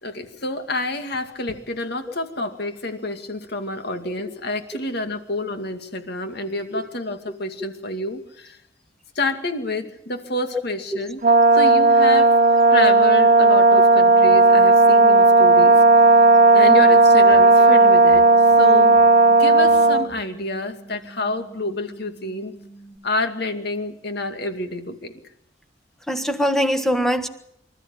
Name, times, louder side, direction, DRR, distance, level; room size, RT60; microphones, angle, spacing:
voice 1, 0.0-8.6 9.2-11.2 11.5-12.3 12.7-15.7 16.5-18.2 18.6-19.0 19.3-22.5 23.0-25.1, left 2 dB, 60° left, 7 dB, 2.3 m, -28 dB
Brass instrument, 11.2-20.1, right 3 dB, 45° right, 1.3 m, -13 dB
sound 1, 14.1-23.0, right 2 dB, 25° left, 3.9 m, -46 dB
voice 2, 26.1-27.3, equal, ahead, 7 dB, 1.4 m, -22 dB
25.5 x 13.5 x 9.0 m, 0.75 s
head